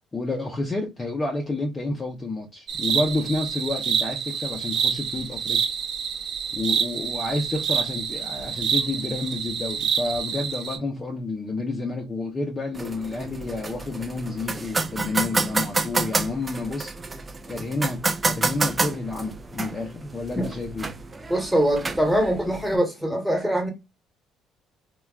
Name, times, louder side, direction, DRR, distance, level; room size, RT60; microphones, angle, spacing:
voice 1, 0.1-5.7 6.5-16.9 17.5-21.0, left 2 dB, 20° left, 0.6 m, -30 dB
sound 1, 2.7-10.8, right 7 dB, 60° right, 0.6 m, -27 dB
sound 2, 12.7-22.8, right 3 dB, 20° right, 0.3 m, -29 dB
voice 2, 21.3-23.7, equal, ahead, 1.1 m, -23 dB
3.3 x 2.2 x 2.3 m
cardioid pair, 125°, 0 cm